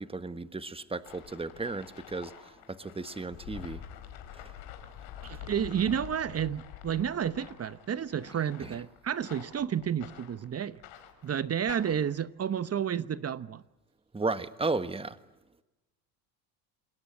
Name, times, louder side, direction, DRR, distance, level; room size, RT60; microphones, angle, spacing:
voice 1, 0.0-3.8 8.6-8.8 14.1-15.2, right 3 dB, 10° right, 1.5 m, -34 dB
sound 1, 1.0-12.1, left 10 dB, 75° left, 4.7 m, -47 dB
voice 2, 5.2-10.8 11.2-13.6, right 8 dB, 30° right, 1.0 m, -31 dB
28.5 x 21.5 x 7.8 m
supercardioid pair, 90°, 46 cm